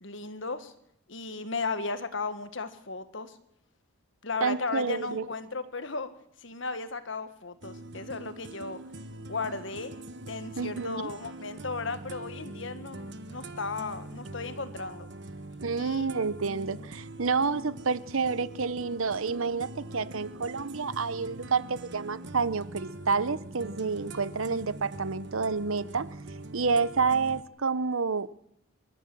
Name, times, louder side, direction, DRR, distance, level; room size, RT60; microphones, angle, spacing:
voice 1, 0.0-0.7 1.1-3.4 4.2-6.1 6.4-8.8 9.3-9.9 10.3-15.1 15.8-16.1, left 4 dB, 60° left, 1.7 m, -35 dB
voice 2, 4.4-5.3 10.6-11.1 15.6-26.1 26.5-28.3, right 4 dB, 75° right, 0.9 m, -29 dB
sound 1, 7.6-27.4, right 2 dB, 55° right, 1.3 m, -43 dB
26.5 x 13.5 x 7.8 m
head